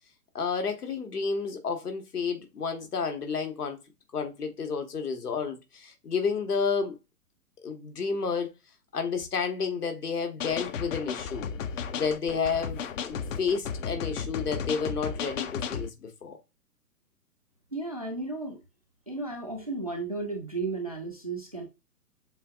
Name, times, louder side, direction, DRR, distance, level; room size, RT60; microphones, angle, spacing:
voice 1, 0.3-3.8 4.1-6.9 7.6-8.5 8.9-11.5 11.9-16.4, left 5 dB, 70° left, 1.4 m, -31 dB
sound 1, 10.4-15.9, left 6 dB, 55° left, 0.6 m, -34 dB
voice 2, 17.7-18.6 19.1-21.6, right 3 dB, 25° right, 0.3 m, -34 dB
7.0 x 2.4 x 2.5 m
figure-of-eight pair, 120°, 48 cm